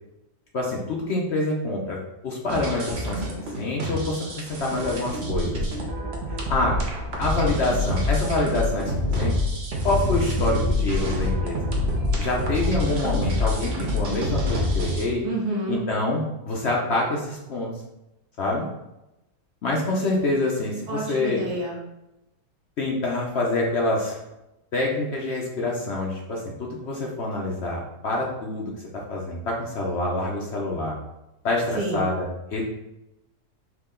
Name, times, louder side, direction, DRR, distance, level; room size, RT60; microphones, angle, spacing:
voice 1, 0.5-3.3 3.6-5.6 6.5-6.7 7.2-9.3 9.8-11.6 12.2-15.2 15.7-17.7 18.4-18.6 19.6-21.5 22.8-24.2 24.7-31.0 31.4-32.6, left 2 dB, 55° left, -1 dB, 0.8 m, -26 dB
sound 1, 2.5-15.1, left 1 dB, 50° right, 1.0 m, -26 dB
voice 2, 15.2-15.8 20.9-21.8 31.7-32.1, right 2 dB, 80° right, -3 dB, 1.8 m, -28 dB
4.7 x 2.9 x 3.7 m, 0.93 s
omnidirectional pair, 1.6 m